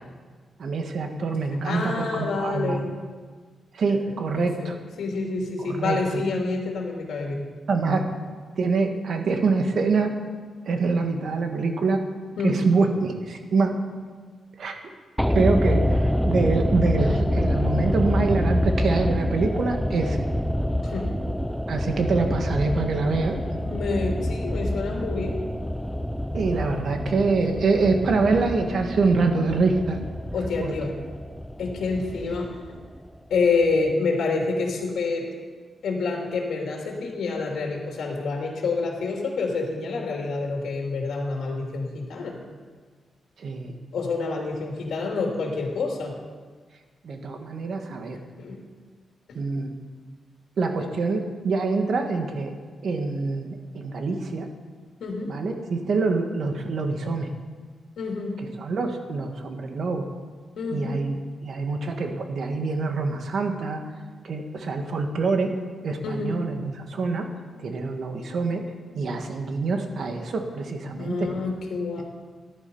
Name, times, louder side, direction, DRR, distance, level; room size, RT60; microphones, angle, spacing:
voice 1, 0.6-2.8 3.7-4.8 5.6-6.2 7.7-8.0 8.6-10.1 10.7-12.0 12.4-13.7 14.6-14.8 15.3-20.2 21.7-23.3 26.3-30.0 30.6-31.1 43.4-43.7 47.0-48.2 49.3-49.7 50.6-52.5 52.8-54.5 55.3-57.3 58.4-60.0 60.7-61.2 61.4-63.8 64.2-65.5 65.8-67.2 67.6-68.6 68.9-71.3 72.0-72.1, right 4 dB, 55° right, 4 dB, 1.6 m, -25 dB
voice 2, 1.6-2.9 3.9-4.0 4.4-4.7 5.0-7.4 12.4-12.6 20.8-21.1 23.6-25.4 30.3-30.9 31.6-32.5 33.3-35.3 35.8-42.4 43.9-46.1 48.1-48.6 55.0-55.3 58.0-58.4 60.6-61.0 66.0-66.4 71.0-72.0, left 4 dB, 70° left, 0 dB, 2.7 m, -27 dB
sound 1, 15.2-33.4 33.6-33.7, equal, ahead, 0.4 m, -27 dB
14.5 x 11.0 x 5.5 m, 1.5 s
wide cardioid pair, 165°, 0 cm